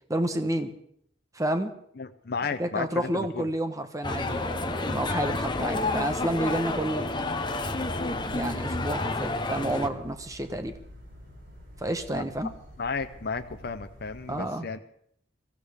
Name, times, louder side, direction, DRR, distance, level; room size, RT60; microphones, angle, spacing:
voice 1, 0.1-0.8 1.3-1.7 2.6-7.1 8.1-10.7 11.8-12.5 14.3-14.7, right 1 dB, 20° right, 8 dB, 1.1 m, -30 dB
voice 2, 2.0-3.5 12.1-12.5 12.8-14.8, left 4 dB, 60° left, 7 dB, 0.7 m, -33 dB
sound 1, 4.0-9.9, left 2 dB, 25° left, 1.0 m, -30 dB
sound 2, 8.0-14.3, equal, 70° right, 6.7 m, -48 dB
23.5 x 15.5 x 3.6 m, 0.69 s
head